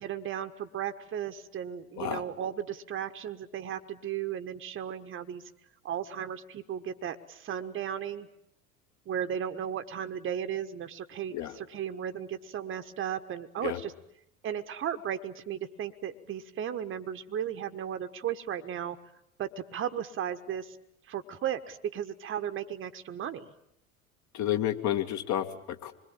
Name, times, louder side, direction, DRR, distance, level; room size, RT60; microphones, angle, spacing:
voice 1, 0.0-5.4 5.8-8.3 9.1-13.9 14.4-19.0 19.4-20.8 21.1-23.5, right 9 dB, 30° right, 8 dB, 1.3 m, -35 dB
voice 2, 24.3-25.9, left 11 dB, 40° left, 7 dB, 2.1 m, -30 dB
26.0 x 21.5 x 9.0 m, 0.76 s
figure-of-eight pair, 75°, 42 cm